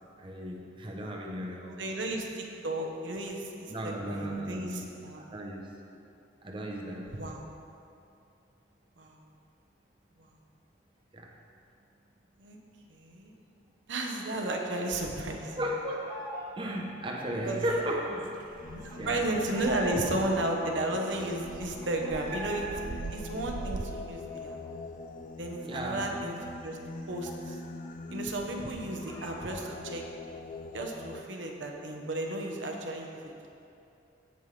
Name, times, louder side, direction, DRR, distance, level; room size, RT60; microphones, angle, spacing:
voice 1, 0.2-1.9 3.7-4.9 5.2-5.7 6.4-7.2 11.1-11.3 15.6-16.2 16.6-18.3 19.0-19.2 25.6-26.1, equal, 25° right, -1 dB, 0.8 m, -35 dB
voice 2, 1.8-5.2 7.1-7.5 9.0-9.2 12.4-12.6 12.9-13.3 13.9-15.6 17.4-17.6 18.8-22.7 23.1-24.6 25.4-26.3 26.6-26.8 27.1-27.6 28.1-30.1 30.7-33.2, right 1 dB, 80° right, 1 dB, 1.0 m, -33 dB
sound 1, 14.9-16.5 16.8-20.3 20.7-20.8 21.0-22.6 23.0-24.7 25.0-25.1 25.4-27.9 28.1-28.2 28.6-29.7, equal, 15° left, 0.9 m, -45 dB
sound 2, 17.4-24.0, right 4 dB, 45° right, 0.3 m, -44 dB
Singing, 18.6-31.2, left 3 dB, 45° left, 0.4 m, -43 dB
16.5 x 5.5 x 3.3 m, 2.6 s
head